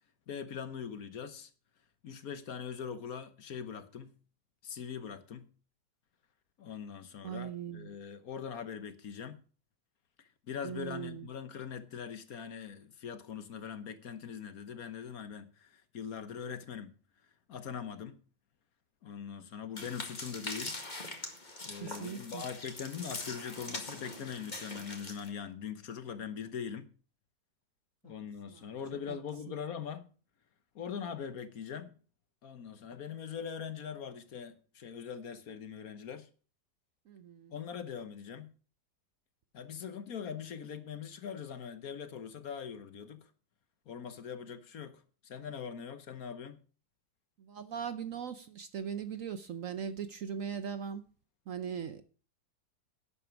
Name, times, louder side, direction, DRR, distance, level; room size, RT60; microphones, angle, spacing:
voice 1, 0.3-1.5 2.0-4.1 4.6-5.5 6.6-9.4 10.2-16.9 17.5-18.2 19.0-20.8 21.6-26.9 28.0-30.1 30.7-32.0 32.4-36.3 37.5-38.5 39.5-43.3 43.9-46.6, left 7 dB, 55° left, 1.3 m, -42 dB
voice 2, 7.2-7.9 10.6-11.3 21.8-22.4 28.0-28.1 28.4-28.6 29.1-29.2 37.1-37.5 47.4-51.0 51.5-52.0, right 7 dB, 60° right, 1.0 m, -39 dB
sound 1, 19.8-25.3, left 2 dB, 25° left, 2.0 m, -43 dB
11.5 x 8.4 x 5.9 m
omnidirectional pair, 1.9 m